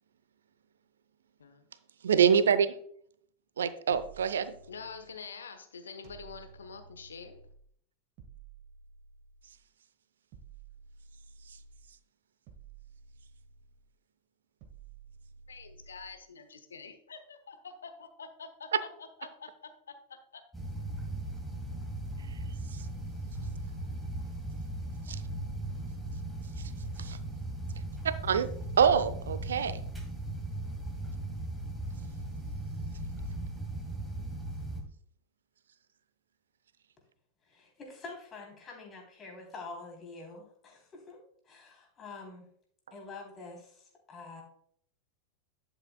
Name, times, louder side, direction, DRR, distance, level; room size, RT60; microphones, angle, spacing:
voice 1, 2.0-2.7 3.6-4.5 25.1-25.2 27.0-27.2 28.2-28.5 28.8-29.8, right 7 dB, 65° right, 14 dB, 0.6 m, -25 dB
sound 1, 3.9-5.2 6.0-7.7 8.2-9.6 10.3-11.9 12.5-13.9 14.6-16.2, right 6 dB, 45° right, 1.4 m, -53 dB
voice 2, 4.7-7.4 15.5-19.9 20.3-20.4, left 5 dB, 70° left, 9 dB, 0.9 m, -46 dB
sound 2, 20.5-34.8, right 1 dB, ahead, 2.0 m, -38 dB
voice 3, 37.4-42.5 42.9-44.4, left 3 dB, 25° left, 0 dB, 3.2 m, -47 dB
11.0 x 8.0 x 2.2 m, 0.63 s
figure-of-eight pair, 90°, 0 cm